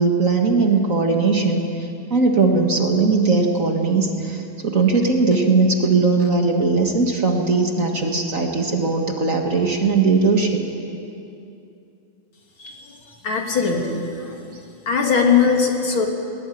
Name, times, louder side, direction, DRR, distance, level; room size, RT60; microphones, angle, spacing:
voice 1, 0.0-10.6, right 4 dB, 35° right, 2 dB, 1.3 m, -19 dB
voice 2, 12.6-12.9 13.2-14.6 14.9-16.1, left 5 dB, 40° left, 1 dB, 2.8 m, -20 dB
20.5 x 20.5 x 9.3 m, 2.7 s
omnidirectional pair, 3.9 m